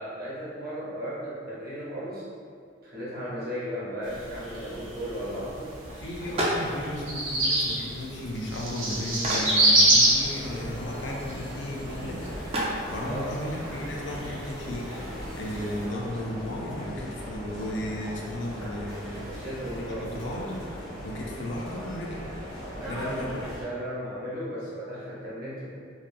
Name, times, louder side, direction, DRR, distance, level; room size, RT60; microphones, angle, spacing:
voice 1, 0.0-2.2 2.8-5.8 13.0-13.5 19.2-20.1 22.8-25.7, equal, 50° right, -8 dB, 0.8 m, -35 dB
sound 1, 4.0-15.9, right 1 dB, 85° right, 0.7 m, -28 dB
sound 2, 5.8-16.3, equal, 30° right, 0.4 m, -37 dB
voice 2, 5.9-12.6 12.9-19.4 19.7-22.2 22.8-23.4, left 1 dB, 65° left, -2 dB, 0.4 m, -35 dB
sound 3, 10.0-23.6, equal, 80° left, 0.8 m, -39 dB
2.8 x 2.2 x 2.5 m, 2.3 s
head